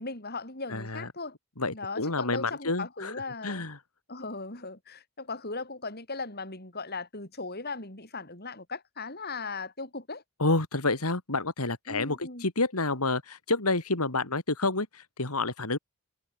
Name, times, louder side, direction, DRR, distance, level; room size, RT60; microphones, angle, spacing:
voice 1, 0.0-1.4 1.7-3.6 4.1-10.2 11.9-12.5, left 3 dB, 45° left, 5.9 m, -38 dB
voice 2, 0.7-1.1 1.6-3.2 3.4-3.8 10.4-15.8, left 3 dB, 85° left, 3.6 m, -29 dB
head